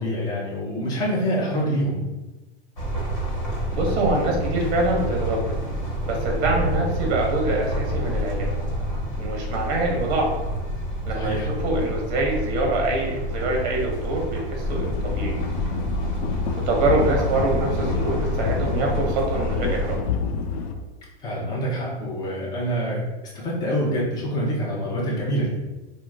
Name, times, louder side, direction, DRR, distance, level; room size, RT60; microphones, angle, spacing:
voice 1, 0.0-2.0 11.1-11.5 21.2-23.0 23.3-25.6, equal, 10° left, -5 dB, 0.5 m, -26 dB
sound 1, 2.8-20.0, equal, 35° left, 1.2 m, -28 dB
voice 2, 3.7-5.6 6.1-8.5 9.2-10.3 11.0-15.4 16.7-20.0, right 2 dB, 40° right, 0 dB, 0.9 m, -25 dB
sound 2, 14.7-20.7, left 6 dB, 65° left, 0.4 m, -28 dB
2.9 x 2.1 x 3.5 m, 1.1 s
hypercardioid pair, 140°, 33 cm